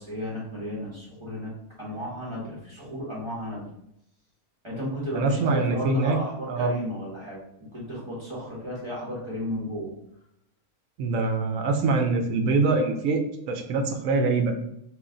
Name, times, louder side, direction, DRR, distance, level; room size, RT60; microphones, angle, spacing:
voice 1, 0.0-1.5 1.8-3.7 4.6-7.4 7.7-9.9, equal, 20° right, -6 dB, 1.1 m, -34 dB
voice 2, 5.1-6.2 6.5-6.7 11.0-13.2 13.5-14.5, right 3 dB, 70° right, 4 dB, 0.9 m, -24 dB
3.1 x 2.7 x 3.7 m, 0.78 s
omnidirectional pair, 1.5 m